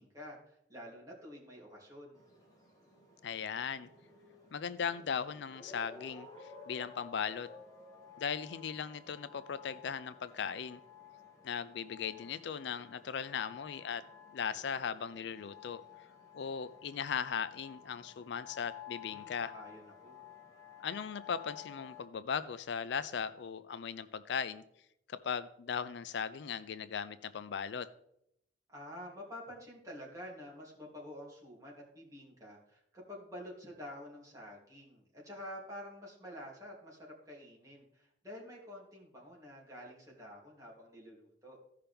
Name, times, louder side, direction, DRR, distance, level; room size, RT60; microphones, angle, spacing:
voice 1, 0.0-2.2 19.0-20.2 28.7-41.6, equal, 20° right, -4 dB, 2.8 m, -49 dB
sound 1, 2.1-22.1, left 7 dB, 20° left, 2.0 m, -54 dB
voice 2, 3.2-3.9 4.5-7.5 8.2-10.8 11.4-14.0 14.3-15.8 16.3-19.5 20.8-24.6 25.1-27.9, left 7 dB, 70° left, 14 dB, 0.4 m, -38 dB
15.0 x 5.7 x 3.4 m, 0.76 s
head